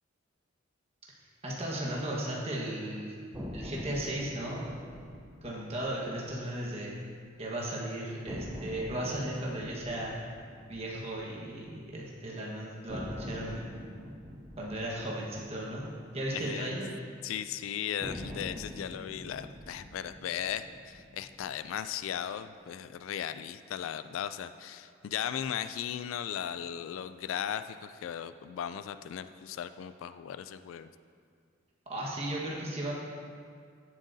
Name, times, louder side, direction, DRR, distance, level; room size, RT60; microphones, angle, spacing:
voice 1, 1.4-3.1 3.5-4.7 5.4-6.9 7.4-10.1 10.7-13.8 14.6-15.9 16.1-16.9 31.9-32.9, right 1 dB, 30° right, -4 dB, 1.3 m, -36 dB
sound 1, 3.3-7.4 7.7-7.8 8.3-12.3 12.9-17.2 18.0-22.4, left 1 dB, 15° right, 0.6 m, -45 dB
voice 2, 16.3-16.8 17.2-30.9, left 9 dB, 85° left, 11 dB, 0.3 m, -37 dB
15.0 x 7.6 x 2.7 m, 2.2 s
head